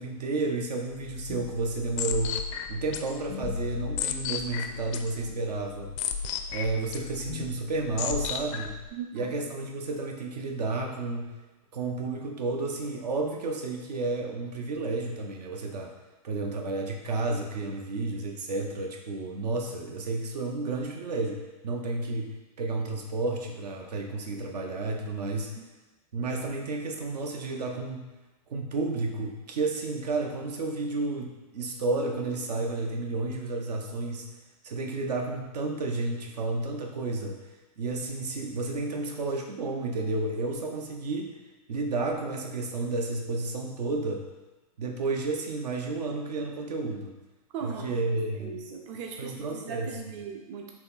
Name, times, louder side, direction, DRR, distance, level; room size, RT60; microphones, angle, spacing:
voice 1, 0.0-5.9 6.5-8.7 9.1-11.3 11.7-15.9 16.2-25.6 26.1-28.1 28.5-34.3 34.6-37.4 37.8-41.4 41.7-44.3 44.8-47.1 47.6-48.6 49.2-49.9, right 3 dB, 80° right, 2 dB, 0.8 m, -31 dB
sound 1, 0.9-8.9, left 7 dB, 50° left, 0.4 m, -34 dB
voice 2, 8.9-9.3 25.5-25.6 47.5-50.7, right 6 dB, 45° right, 2 dB, 0.6 m, -39 dB
4.2 x 2.9 x 4.0 m, 1.2 s
hypercardioid pair, 130°, 20 cm